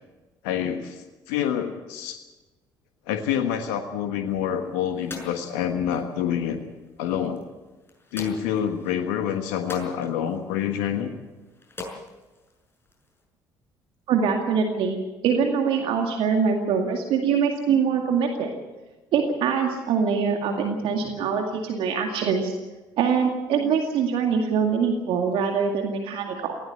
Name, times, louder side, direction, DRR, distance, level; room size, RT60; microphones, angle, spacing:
voice 1, 0.4-2.2 3.1-6.6 7.0-7.4 8.1-11.1, left 9 dB, 75° left, 6 dB, 1.4 m, -27 dB
sound 1, 4.3-13.2, left 3 dB, 20° left, 6.6 m, -45 dB
voice 2, 14.1-15.0 15.2-18.5 19.1-22.5 23.0-26.5, right 6 dB, 60° right, 3 dB, 2.2 m, -23 dB
18.5 x 16.5 x 8.6 m, 1.1 s
hypercardioid pair, 55°, 10 cm